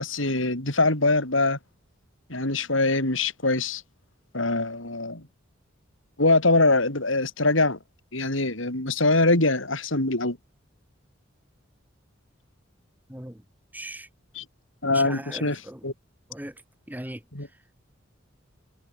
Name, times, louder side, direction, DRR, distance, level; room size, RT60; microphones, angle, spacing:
voice 1, 0.0-1.6 2.3-3.8 4.3-5.2 6.2-7.8 8.1-10.4 14.4-14.5 14.8-15.9 17.3-17.5, left 2 dB, 80° left, 5.5 m, -23 dB
voice 2, 13.7-14.1 14.9-15.8 16.3-16.5 16.9-17.2, right 1 dB, 10° right, 2.5 m, -38 dB
head